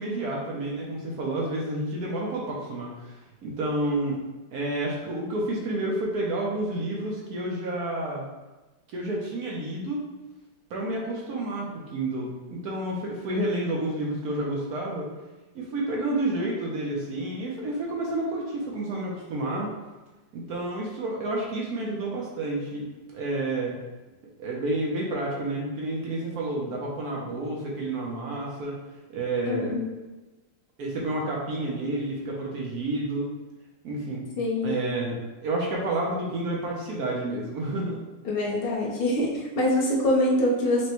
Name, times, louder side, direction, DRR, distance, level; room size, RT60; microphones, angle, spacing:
voice 1, 0.0-3.1 3.4-4.2 4.5-8.2 8.9-10.0 10.7-15.1 15.5-19.7 20.3-22.9 23.1-23.7 24.4-28.8 29.1-29.7 30.8-33.3 33.8-34.2 34.6-38.0, right 2 dB, 65° right, -3 dB, 1.0 m, -30 dB
voice 2, 29.4-29.8 34.4-34.7 38.2-40.9, left 1 dB, 55° left, -4 dB, 0.6 m, -24 dB
6.0 x 2.2 x 2.9 m, 1.1 s
omnidirectional pair, 2.0 m